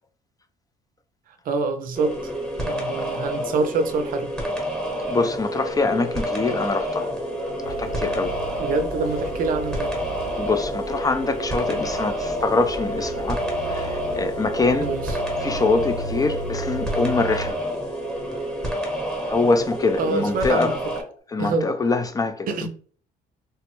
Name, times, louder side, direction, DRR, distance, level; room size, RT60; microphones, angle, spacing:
voice 1, 1.5-2.3 2.6-4.3 8.6-9.9 14.8-15.2 20.0-20.8 21.4-21.7 22.5-22.7, right 3 dB, 55° right, 0.5 m, -26 dB
sound 1, 1.9-21.0, equal, ahead, 1.0 m, -29 dB
sound 2, 4.3-21.2, equal, 85° left, 1.0 m, -37 dB
voice 2, 5.1-7.1 7.7-8.3 10.4-13.4 13.7-14.9 15.4-17.6 19.3-20.8 21.3-22.7, left 3 dB, 20° left, 0.3 m, -24 dB
sound 3, 7.6-17.5, right 2 dB, 65° left, 0.9 m, -37 dB
3.3 x 2.0 x 3.0 m
cardioid pair, 110°, 17 cm